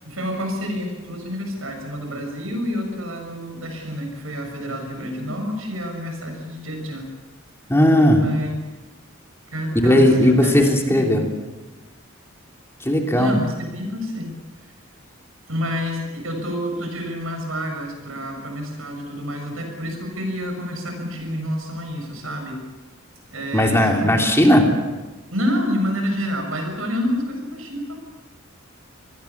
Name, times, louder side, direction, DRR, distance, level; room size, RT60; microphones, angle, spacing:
voice 1, 0.0-7.1 8.2-8.5 9.5-11.2 13.1-14.3 15.5-22.6 23.3-24.2 25.3-28.0, equal, 85° right, 3 dB, 7.1 m, -28 dB
voice 2, 7.7-8.2 9.7-11.2 12.8-13.4 23.5-24.7, left 1 dB, 10° left, 2 dB, 3.0 m, -16 dB
26.5 x 20.0 x 7.3 m, 1.2 s
head